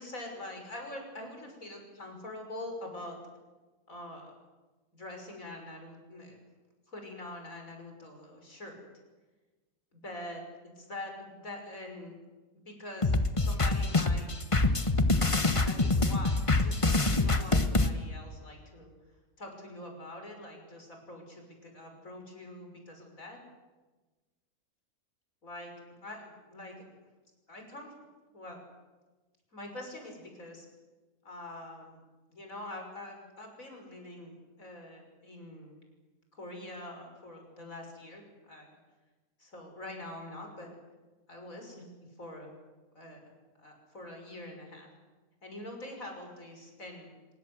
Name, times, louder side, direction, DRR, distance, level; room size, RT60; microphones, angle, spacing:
voice 1, 0.0-3.2 3.9-4.3 4.9-6.4 6.9-8.8 9.9-12.2 12.6-14.3 15.3-18.9 19.4-23.4 25.4-25.7 26.0-26.9 27.5-27.9 28.3-28.6 29.5-30.7 31.2-32.0 32.3-35.7 36.3-38.8 39.4-40.7 41.3-42.5 42.9-43.3 43.6-44.9 45.4-47.1, left 1 dB, 65° left, 3 dB, 6.3 m, -44 dB
sound 1, 13.0-17.9, left 2 dB, 25° left, 1.3 m, -25 dB
25.5 x 24.0 x 7.9 m, 1.2 s
omnidirectional pair, 1.5 m